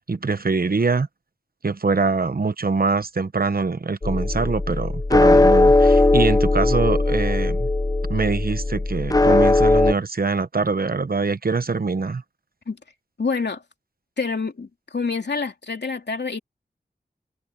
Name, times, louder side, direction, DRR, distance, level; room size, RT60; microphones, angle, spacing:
voice 1, 0.1-1.1 1.6-7.7 8.1-12.2, right 4 dB, 60° right, 1.0 m, -24 dB
sound 1, 4.0-9.9, left 2 dB, 20° left, 0.5 m, -18 dB
voice 2, 13.2-13.6 14.2-16.4, left 4 dB, 90° left, 2.8 m, -27 dB
wide cardioid pair, 70°, 17 cm